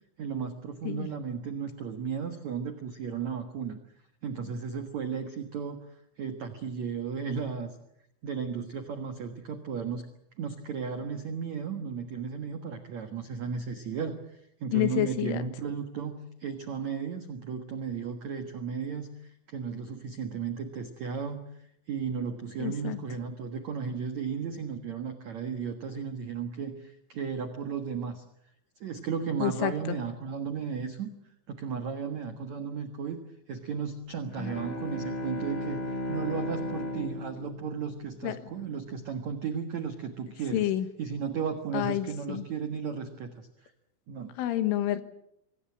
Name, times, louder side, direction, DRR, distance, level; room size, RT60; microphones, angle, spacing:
voice 1, 0.2-3.8 4.2-5.8 6.2-7.8 8.2-10.0 10.4-21.4 21.9-28.2 28.8-31.1 31.5-33.2 33.5-40.7 41.0-43.7 44.1-44.3, right 6 dB, 80° right, 7 dB, 1.6 m, -35 dB
voice 2, 14.7-15.4 22.6-23.0 29.4-29.7 38.2-38.3 40.5-40.9 41.7-42.4 44.4-45.0, left 14 dB, 80° left, 11 dB, 3.8 m, -28 dB
Bowed string instrument, 34.2-38.8, left 1 dB, 25° left, 3.6 m, -35 dB
26.0 x 18.5 x 8.6 m, 0.77 s
omnidirectional pair, 5.8 m